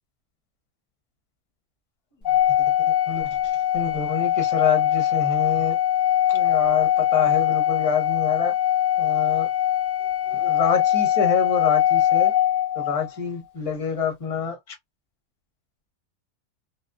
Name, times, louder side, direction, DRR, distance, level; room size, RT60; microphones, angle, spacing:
Organ, 2.2-13.1, left 12 dB, 75° left, 0.4 m, -22 dB
voice 1, 3.1-5.8 6.3-8.5 9.0-9.5 10.3-12.3 12.7-14.6, left 6 dB, 35° left, 0.7 m, -27 dB
2.5 x 2.2 x 2.2 m
omnidirectional pair, 1.5 m